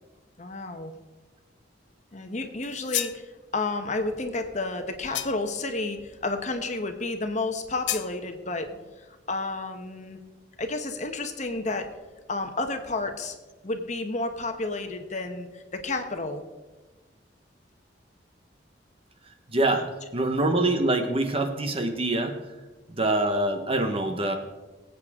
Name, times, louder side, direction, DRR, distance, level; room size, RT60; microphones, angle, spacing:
voice 1, 0.4-0.9 2.1-10.2 10.6-11.9 12.3-13.4 13.6-16.4, left 2 dB, 40° left, 6 dB, 1.1 m, -31 dB
sound 1, 2.6-3.2 5.1-5.6 7.9-8.1, left 13 dB, 80° left, 0.6 m, -31 dB
voice 2, 19.5-22.4 22.9-24.4, right 2 dB, 30° right, 6 dB, 1.1 m, -25 dB
21.5 x 8.6 x 3.7 m, 1.2 s
head